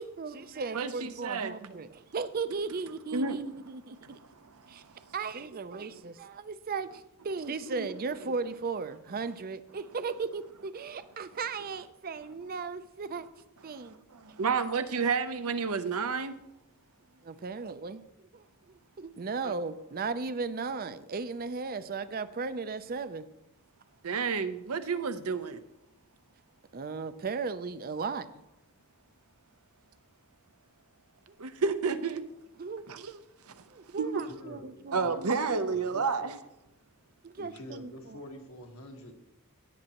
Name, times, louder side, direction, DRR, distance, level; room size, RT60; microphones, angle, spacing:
voice 1, 0.0-4.2 4.7-4.8 5.1-13.3 13.6-14.0 17.2-23.3 26.7-28.4 31.3-31.4 32.6-32.9 33.7-35.7 37.2-38.2, right 4 dB, 40° right, 13 dB, 0.5 m, -36 dB
voice 2, 0.7-1.5 3.1-3.4 4.4-5.1 7.8-7.9 13.8-16.4 19.4-19.5 24.0-25.6 31.4-32.2 32.9-33.2 33.5-33.6 34.0-34.2 34.9-36.4, right 5 dB, 75° right, 10 dB, 0.7 m, -31 dB
voice 3, 34.1-35.1 35.7-36.3 37.4-39.1, left 1 dB, 70° left, 2 dB, 1.6 m, -47 dB
16.5 x 8.9 x 3.0 m, 0.90 s
head